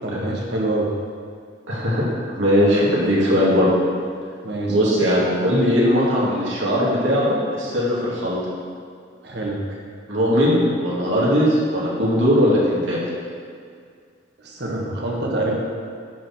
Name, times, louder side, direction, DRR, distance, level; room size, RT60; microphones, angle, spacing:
voice 1, 0.0-0.9 4.4-4.8 9.2-9.6 14.4-15.5, right 2 dB, 60° right, -2 dB, 1.6 m, -25 dB
voice 2, 1.7-2.1 2.3-3.7 4.7-8.4 10.1-13.0, equal, 85° right, -6 dB, 2.6 m, -19 dB
10.5 x 6.3 x 4.4 m, 2.1 s
head